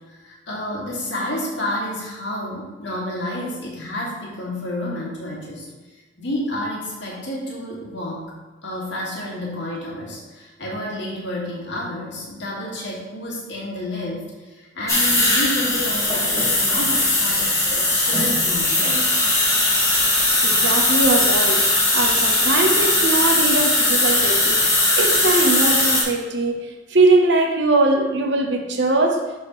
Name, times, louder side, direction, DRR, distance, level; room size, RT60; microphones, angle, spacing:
voice 1, 0.1-5.7 6.2-8.3 8.6-14.3 14.6-19.1, left 1 dB, 80° left, -4 dB, 2.4 m, -30 dB
sound 1, 14.9-26.0, left 2 dB, 20° left, 2.0 m, -19 dB
voice 2, 20.4-21.7 21.9-24.6 25.0-26.6 26.9-29.2, right 2 dB, 80° right, 3 dB, 1.0 m, -20 dB
11.5 x 4.4 x 3.2 m, 1.3 s
head